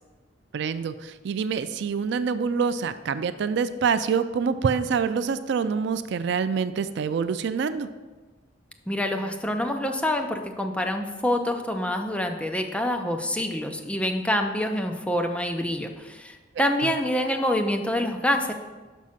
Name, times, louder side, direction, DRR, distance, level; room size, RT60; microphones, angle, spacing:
voice 1, 0.5-7.9 16.6-16.9, right 6 dB, 65° right, 12 dB, 0.3 m, -26 dB
voice 2, 8.9-18.5, left 1 dB, 5° left, 4 dB, 0.5 m, -26 dB
6.2 x 5.3 x 5.7 m, 1.3 s
head